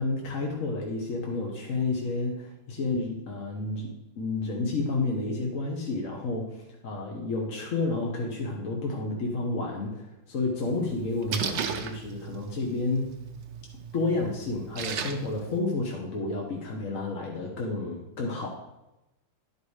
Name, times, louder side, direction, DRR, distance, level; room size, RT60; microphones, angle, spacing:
voice 1, 0.0-13.1 13.9-18.5, left 3 dB, 45° left, -1 dB, 1.2 m, -30 dB
Splash splatter, 10.6-15.6, right 7 dB, 70° right, 1.5 m, -36 dB
11.0 x 5.3 x 4.9 m, 0.97 s
omnidirectional pair, 2.3 m